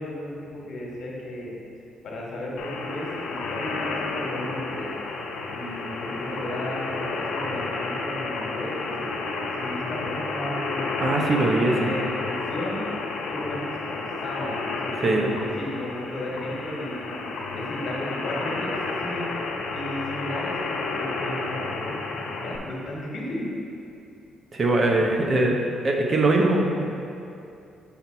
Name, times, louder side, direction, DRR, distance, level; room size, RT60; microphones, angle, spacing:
voice 1, 0.0-1.5 2.0-4.9 5.5-11.3 11.6-12.8 13.3-19.3 19.7-23.5, left 1 dB, 60° left, -3 dB, 1.3 m, -34 dB
sound 1, 2.6-22.6, left 3 dB, 85° left, 0.6 m, -31 dB
voice 2, 11.0-11.9 15.0-15.3 24.5-26.8, right 2 dB, 45° right, 1 dB, 0.7 m, -22 dB
5.8 x 4.1 x 4.4 m, 2.7 s
cardioid pair, 90°, 0 cm